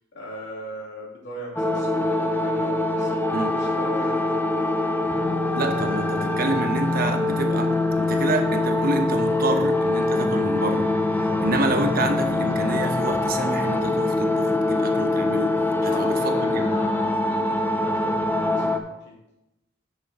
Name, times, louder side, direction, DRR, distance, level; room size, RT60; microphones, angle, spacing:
voice 1, 0.1-3.3 3.5-4.9 15.8-19.2, equal, 65° left, -3 dB, 2.7 m, -39 dB
sound 1, 1.6-18.8, left 2 dB, 10° left, 0.6 m, -23 dB
voice 2, 3.3-3.6 5.5-10.9 11.2-16.7, right 2 dB, 50° right, 5 dB, 1.0 m, -28 dB
9.2 x 6.4 x 4.2 m, 0.91 s
head